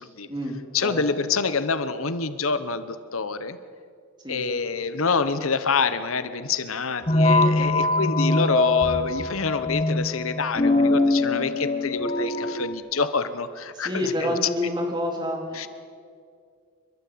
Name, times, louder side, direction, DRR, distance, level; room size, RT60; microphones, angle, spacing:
voice 1, 0.7-3.6 4.3-14.5 15.5-15.7, left 4 dB, 80° left, 13 dB, 1.1 m, -27 dB
sound 1, 7.1-12.7, left 2 dB, 30° left, 1.2 m, -22 dB
voice 2, 13.7-15.4, left 1 dB, 20° right, 1 dB, 3.4 m, -27 dB
29.5 x 13.0 x 8.7 m, 2.2 s
head